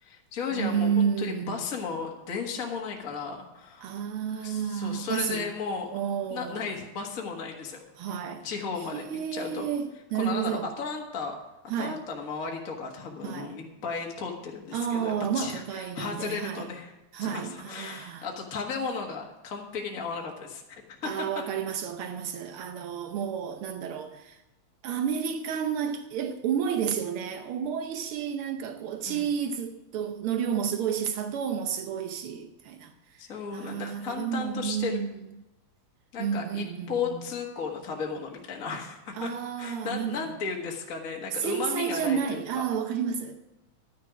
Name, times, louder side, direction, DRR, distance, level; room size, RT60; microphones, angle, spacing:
voice 1, 0.0-3.9 4.3-6.0 6.3-7.8 8.4-9.0 9.3-9.7 10.1-11.4 11.8-16.9 17.2-21.4 29.0-29.3 33.2-35.0 36.1-39.3 39.6-42.6, left 5 dB, 40° left, 1.4 m, -35 dB
voice 2, 0.5-1.6 3.8-5.5 5.9-6.8 8.0-8.5 8.9-10.7 11.7-12.0 13.2-13.5 14.7-16.7 17.1-18.3 21.0-24.4 24.8-33.2 33.5-35.1 36.2-37.2 39.1-40.4 41.4-43.4, right 7 dB, 85° right, 1.2 m, -31 dB
11.5 x 9.6 x 4.9 m
omnidirectional pair, 3.4 m